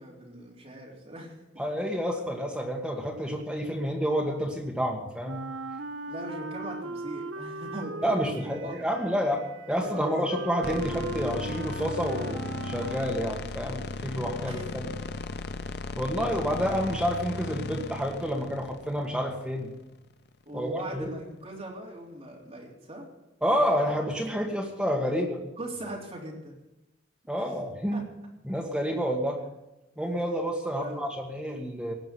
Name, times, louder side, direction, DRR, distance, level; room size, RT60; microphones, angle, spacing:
voice 1, 0.0-1.7 6.1-9.0 9.9-10.2 14.5-14.6 20.5-23.1 25.6-26.6 27.3-27.5 27.9-28.0 30.8-31.1, right 1 dB, 30° right, -3 dB, 3.7 m, -40 dB
voice 2, 1.6-5.5 8.0-9.4 9.7-14.9 16.0-19.7 20.5-21.1 23.4-25.4 27.3-28.0 28.4-29.4 30.0-31.9, equal, 5° right, 0 dB, 1.5 m, -29 dB
Wind instrument woodwind instrument, 5.2-13.5, right 2 dB, 85° right, 0.7 m, -39 dB
sound 1, 10.6-19.8, left 3 dB, 55° left, 0.6 m, -36 dB
18.5 x 6.1 x 9.9 m, 0.96 s
head